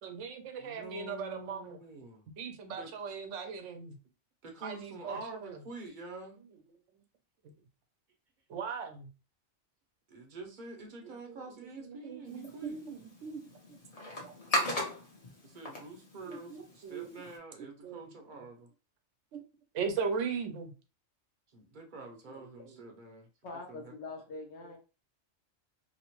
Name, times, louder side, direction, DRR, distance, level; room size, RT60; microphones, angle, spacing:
voice 1, 0.0-1.8 2.4-4.0 4.6-5.6 6.5-6.8 7.4-7.5 8.5-9.1 11.0-13.8 14.2-14.4 16.2-17.3 17.8-18.4 19.3-19.4 19.7-20.7 22.3-22.8 24.6-24.7, right 5 dB, 85° right, 1.0 m, -39 dB
voice 2, 0.6-2.2 2.7-2.9 4.4-6.4 10.1-12.8 15.4-18.7 21.5-23.3 23.7-23.9, right 3 dB, 50° right, 0.7 m, -46 dB
sound 1, 12.3-17.4, left 1 dB, 35° left, 0.8 m, -38 dB
voice 3, 23.4-24.8, left 3 dB, 70° left, 0.9 m, -43 dB
2.8 x 2.0 x 2.9 m
omnidirectional pair, 1.3 m